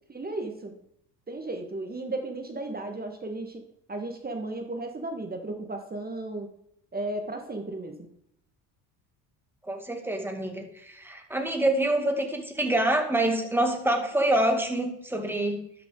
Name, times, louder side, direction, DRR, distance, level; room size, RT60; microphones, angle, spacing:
voice 1, 0.1-0.7 1.3-3.6 3.9-6.5 6.9-8.0, right 2 dB, 20° right, 5 dB, 1.5 m, -34 dB
voice 2, 9.6-15.6, right 1 dB, 5° right, 4 dB, 2.0 m, -26 dB
11.5 x 6.0 x 3.8 m, 0.73 s
hypercardioid pair, 75°, 44 cm